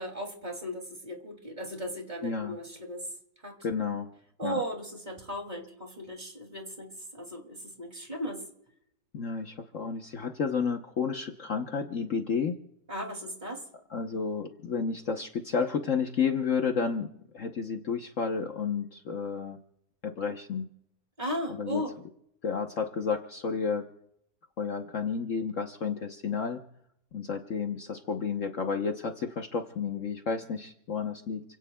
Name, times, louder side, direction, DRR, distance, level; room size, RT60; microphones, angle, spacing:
voice 1, 0.0-3.0 3.4-3.6 4.4-8.4 12.9-13.6 21.2-22.0, equal, 25° right, 2 dB, 2.8 m, -36 dB
voice 2, 2.2-2.6 3.6-4.1 4.4-4.6 9.1-12.5 13.9-19.6 20.0-20.7 21.5-21.8 22.4-23.9 24.6-26.6 27.1-31.4, left 5 dB, 55° left, 4 dB, 1.2 m, -31 dB
29.5 x 17.0 x 2.3 m, 0.74 s
omnidirectional pair, 1.8 m